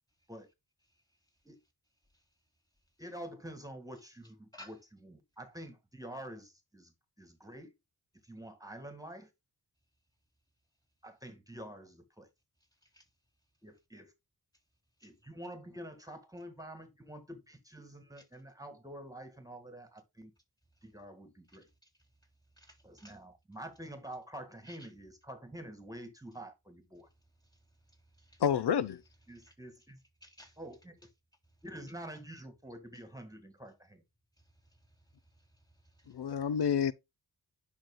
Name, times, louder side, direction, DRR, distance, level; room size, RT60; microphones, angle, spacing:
voice 1, 3.0-6.9 7.2-7.7 8.2-9.3 11.0-12.3 13.6-14.1 15.0-20.3 20.8-21.7 22.8-27.1 29.3-30.0 30.6-31.0 31.6-34.0, right 1 dB, 10° right, 1.8 m, -47 dB
voice 2, 21.5-21.9 22.6-23.2 24.6-24.9 27.4-28.4 29.3-29.5 30.2-30.6 34.4-36.3 36.6-36.7, left 1 dB, 10° left, 3.6 m, -58 dB
voice 3, 28.4-29.0 36.1-36.9, left 8 dB, 85° left, 0.7 m, -29 dB
10.5 x 5.9 x 2.2 m
wide cardioid pair, 85°, 39 cm